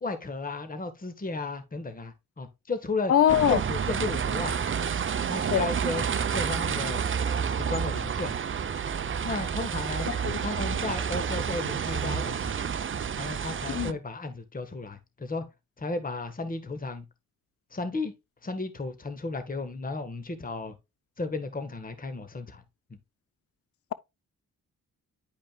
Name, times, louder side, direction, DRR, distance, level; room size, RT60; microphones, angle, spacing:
voice 1, 0.0-3.1 3.4-4.6 4.8-5.0 5.2-6.0 6.3-7.0 7.6-8.3 9.2-10.1 10.4-12.7 13.2-15.4 15.8-17.0 17.7-18.1 18.4-20.8 21.2-22.6, left 3 dB, 25° left, 1.3 m, -34 dB
voice 2, 3.1-3.6 5.5-5.7 10.1-10.4 13.7-13.9, left 10 dB, 40° left, 0.6 m, -23 dB
sound 1, 3.3-13.9, right 7 dB, 35° right, 0.6 m, -29 dB
10.5 x 5.1 x 2.3 m
cardioid pair, 75°, 35 cm